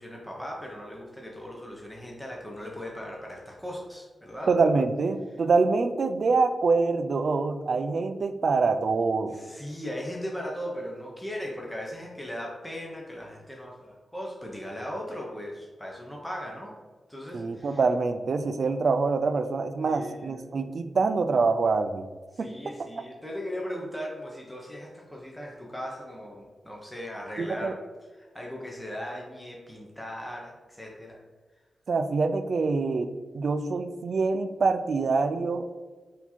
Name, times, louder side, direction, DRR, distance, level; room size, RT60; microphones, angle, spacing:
voice 1, 0.0-4.5 9.3-16.7 17.1-17.8 19.8-20.4 22.3-27.8 28.1-31.2, equal, 5° left, -2 dB, 0.7 m, -38 dB
voice 2, 4.5-9.3 17.3-22.1 22.4-22.5 27.4-27.7 31.9-35.8, right 4 dB, 60° right, 9 dB, 0.3 m, -25 dB
4.3 x 2.8 x 4.2 m, 1.3 s
wide cardioid pair, 120°, 0 cm